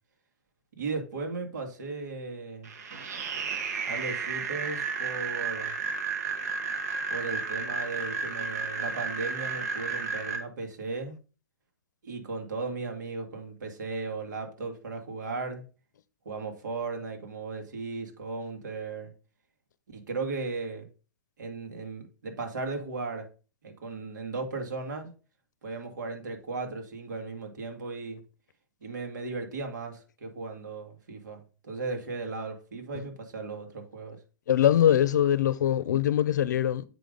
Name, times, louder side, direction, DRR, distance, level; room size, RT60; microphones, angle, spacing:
voice 1, 0.8-2.7 3.8-5.7 7.1-11.2 12.0-15.6 16.3-19.1 19.9-20.9 21.4-23.3 23.6-25.1 25.6-28.2 28.8-34.2, right 3 dB, 80° right, 2.2 m, -36 dB
sound 1, 2.6-10.4, right 5 dB, 60° right, 1.6 m, -32 dB
voice 2, 34.5-36.8, left 10 dB, 75° left, 0.6 m, -22 dB
7.6 x 5.2 x 3.9 m
hypercardioid pair, 170°, 10 cm